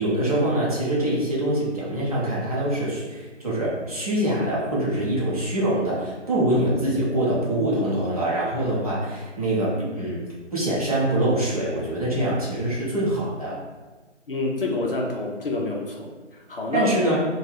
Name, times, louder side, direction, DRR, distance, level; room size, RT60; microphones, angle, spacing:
voice 1, 0.0-10.2 10.5-13.6 16.7-17.2, right 1 dB, 30° right, -7 dB, 0.7 m, -24 dB
voice 2, 14.3-16.9, left 2 dB, 50° left, -1 dB, 0.5 m, -28 dB
2.7 x 2.2 x 3.3 m, 1.3 s
figure-of-eight pair, 160°, 36 cm